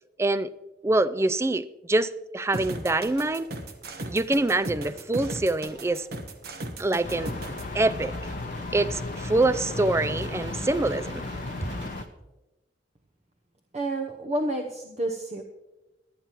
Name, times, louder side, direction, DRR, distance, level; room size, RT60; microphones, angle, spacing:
voice 1, 0.2-0.5 0.8-3.5 4.1-6.1 6.8-7.3 7.7-8.1 8.7-11.2, right 2 dB, 15° right, 0.3 m, -25 dB
sound 1, 2.5-7.6, right 1 dB, 60° right, 1.2 m, -36 dB
sound 2, 7.0-12.0, left 2 dB, 50° left, 0.7 m, -34 dB
sound 3, 7.0-12.1, right 2 dB, 85° right, 1.3 m, -44 dB
voice 2, 13.7-15.4, right 1 dB, 40° right, 0.8 m, -29 dB
23.0 x 9.1 x 3.0 m
head